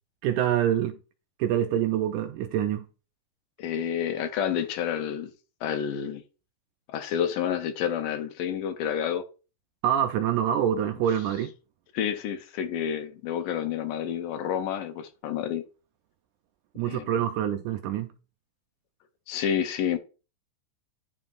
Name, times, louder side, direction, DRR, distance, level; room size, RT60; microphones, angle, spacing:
voice 1, 0.2-1.0 1.4-2.9 9.8-11.5 16.8-18.1, right 10 dB, 80° right, 1.8 m, -26 dB
voice 2, 3.6-5.3 5.6-6.2 6.9-9.3 11.9-15.6 16.9-17.2 19.3-20.0, left 9 dB, 80° left, 2.3 m, -29 dB
9.9 x 5.5 x 2.5 m
omnidirectional pair, 3.9 m